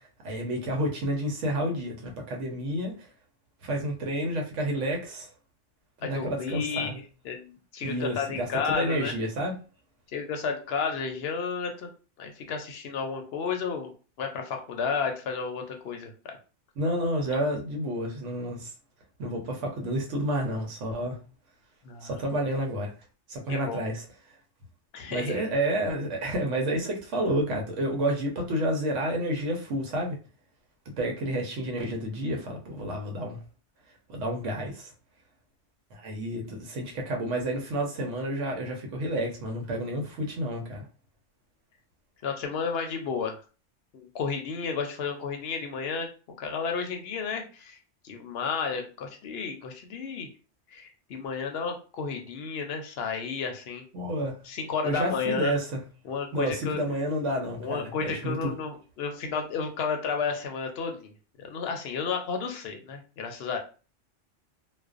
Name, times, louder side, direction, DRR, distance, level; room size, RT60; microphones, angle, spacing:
voice 1, 0.2-2.9 3.6-5.3 6.0-7.0 7.8-8.5 8.7-9.5 16.8-18.7 19.2-21.2 22.0-22.9 23.3-24.0 25.1-30.2 31.0-33.4 34.1-34.9 35.9-40.9 53.9-54.3 54.8-55.8 56.3-58.6, right 1 dB, 80° right, 1 dB, 1.0 m, -30 dB
voice 2, 6.0-6.9 7.2-9.1 10.1-11.9 12.2-13.9 14.2-16.4 21.8-22.2 23.5-23.9 24.9-25.5 42.2-43.4 43.9-46.1 46.4-47.8 48.0-50.3 50.7-53.8 54.4-55.5 56.0-56.8 57.6-63.6, left 5 dB, 65° left, 4 dB, 0.7 m, -32 dB
2.4 x 2.1 x 2.4 m, 0.35 s
omnidirectional pair, 1.2 m